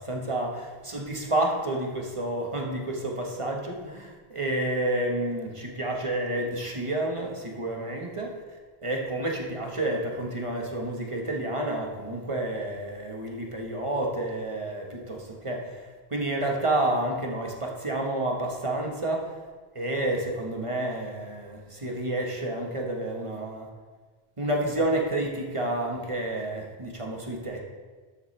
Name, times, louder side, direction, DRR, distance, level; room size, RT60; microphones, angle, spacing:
voice 1, 0.0-8.3 8.8-19.3 19.7-23.7 24.4-27.6, right 1 dB, 30° right, 0 dB, 1.3 m, -30 dB
12.5 x 7.0 x 3.2 m, 1.4 s
omnidirectional pair, 1.0 m